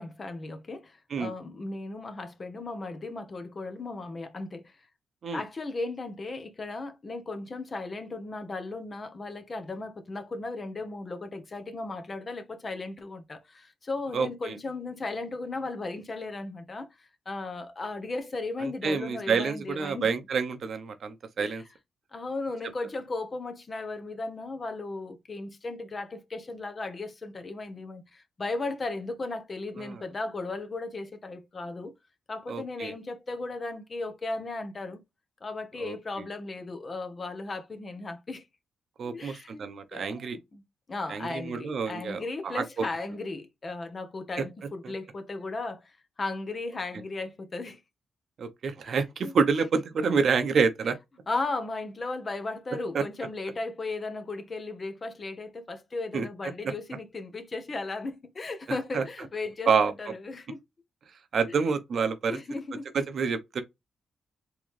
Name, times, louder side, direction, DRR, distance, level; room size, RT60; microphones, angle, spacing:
voice 1, 0.0-4.7 5.3-20.1 21.4-21.5 22.1-31.9 32.3-35.0 35.4-38.5 39.0-39.6 39.9-40.1 40.5-40.6 40.9-47.8 48.9-49.0 49.2-49.3 51.3-59.7 60.0-60.6 62.3-62.9, left 3 dB, 40° left, 0.9 m, -36 dB
voice 2, 14.1-14.6 18.6-21.6 29.8-30.0 32.5-32.9 35.8-35.9 39.0-40.4 41.1-42.8 44.4-44.5 44.8-44.9 48.4-51.0 52.9-53.0 56.1-56.3 56.6-56.7 58.9-59.0 59.7-60.1 61.3-62.4 62.9-63.6, right 5 dB, 65° right, 0.8 m, -28 dB
3.8 x 3.1 x 3.1 m
cardioid pair, 80°, 0 cm